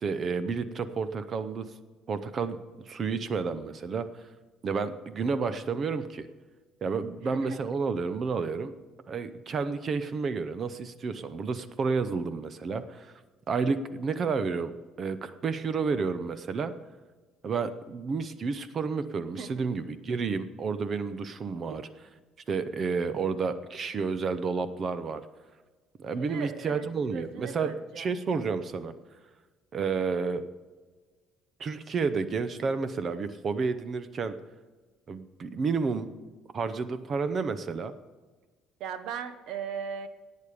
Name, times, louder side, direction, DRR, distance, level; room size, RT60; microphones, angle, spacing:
voice 1, 0.0-1.7 2.1-2.6 2.9-4.2 4.6-6.3 6.8-8.7 9.1-13.1 13.5-14.7 15.0-16.7 17.4-21.9 22.5-25.2 26.0-28.9 29.7-30.4 31.6-34.3 35.1-36.1 36.5-37.9, right 5 dB, 30° right, 12 dB, 0.7 m, -30 dB
voice 2, 7.2-7.6 19.4-19.5 26.2-28.1 38.8-40.1, right 7 dB, 65° right, 11 dB, 1.1 m, -38 dB
18.0 x 8.5 x 5.0 m, 1.4 s
cardioid pair, 160°, 0 cm